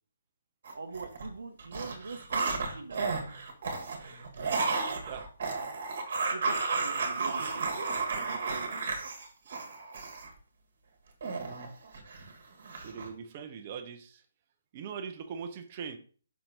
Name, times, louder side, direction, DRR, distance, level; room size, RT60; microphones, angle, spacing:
sound 1, 0.6-1.3 1.6-10.3 11.2-12.3 12.6-13.1, right 4 dB, 55° right, 1.5 m, -33 dB
voice 1, 0.7-3.1 6.3-7.9 8.2-8.7, right 4 dB, 70° right, 7 dB, 0.7 m, -43 dB
voice 2, 12.8-14.2 14.7-16.0, right 6 dB, 35° right, 6 dB, 0.7 m, -41 dB
5.8 x 4.4 x 3.8 m, 0.41 s
figure-of-eight pair, 140°, 0 cm